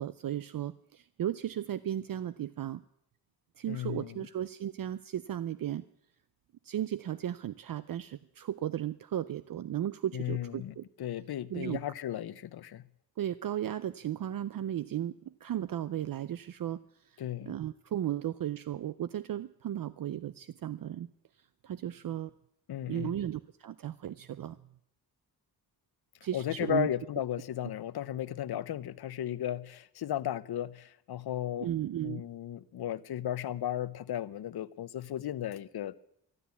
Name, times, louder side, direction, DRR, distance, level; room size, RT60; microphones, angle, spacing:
voice 1, 0.0-2.8 3.6-5.8 6.6-10.8 11.5-11.8 13.2-21.1 21.6-22.3 22.9-24.6 26.2-26.9 31.6-32.2, right 11 dB, 60° right, 0.5 m, -35 dB
voice 2, 3.7-4.2 10.1-12.8 17.2-17.5 22.7-23.1 26.3-31.7 32.0-35.9, left 11 dB, 70° left, 0.7 m, -35 dB
12.5 x 12.0 x 8.3 m
wide cardioid pair, 105°, 39 cm